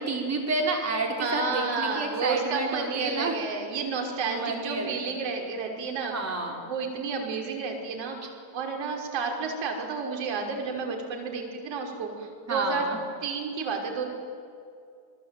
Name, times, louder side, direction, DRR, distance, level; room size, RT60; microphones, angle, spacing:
voice 1, 0.0-3.3 4.3-5.0 6.1-6.6 12.5-13.0, right 3 dB, 30° right, 2 dB, 5.5 m, -30 dB
voice 2, 1.2-6.1 6.6-8.2 8.5-12.9 13.2-14.0, right 4 dB, 65° right, 3 dB, 5.6 m, -31 dB
28.5 x 19.5 x 9.3 m, 2.4 s
cardioid pair, 140°, 49 cm